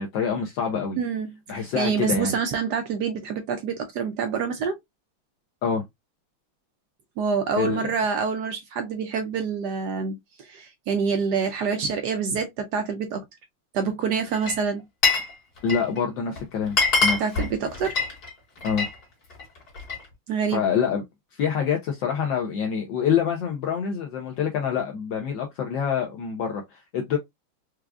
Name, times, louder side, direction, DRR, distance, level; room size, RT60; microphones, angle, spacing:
voice 1, 0.0-1.0 1.5-2.4 5.6-5.8 7.6-7.9 15.6-17.2 18.6-18.9 20.5-21.0 21.3-27.2, left 7 dB, 70° left, 1.3 m, -26 dB
voice 2, 1.0-4.8 7.2-13.2 13.7-14.8 17.2-18.0 20.3-20.6, right 6 dB, 75° right, 1.0 m, -27 dB
Glass, 14.3-15.3 15.6-16.0 16.4-16.5 16.7-18.9 19.3-20.1, left 3 dB, 50° left, 2.1 m, -24 dB
4.7 x 2.3 x 2.2 m
omnidirectional pair, 2.2 m